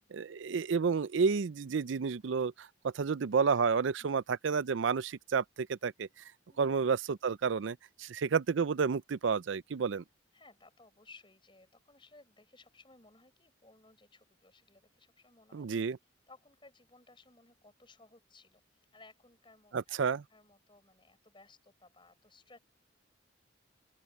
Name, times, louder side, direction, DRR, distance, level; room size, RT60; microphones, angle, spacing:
voice 1, 0.1-6.1 6.6-10.0 15.5-16.0 19.7-20.2, right 5 dB, 65° right, 0.5 m, -30 dB
voice 2, 6.5-6.8 10.3-15.9 16.3-18.6 18.9-20.0 20.3-22.6, left 3 dB, 25° left, 6.4 m, -60 dB
open air
head